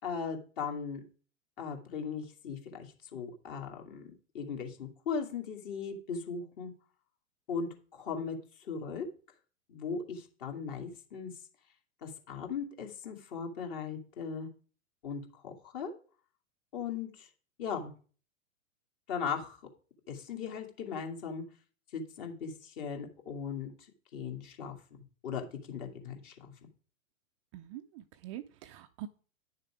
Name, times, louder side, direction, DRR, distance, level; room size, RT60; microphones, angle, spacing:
voice 1, 0.0-1.0 1.6-6.7 7.5-9.1 9.7-11.3 12.0-14.5 15.0-15.9 16.7-17.3 17.6-17.9 19.1-19.6 20.1-21.4 21.9-23.7 24.1-24.8 25.2-26.5, left 6 dB, 45° left, 3 dB, 2.5 m, -38 dB
voice 2, 27.5-29.1, right 13 dB, 25° right, 7 dB, 0.5 m, -44 dB
10.0 x 6.6 x 4.9 m, 0.41 s
figure-of-eight pair, 105°, 38 cm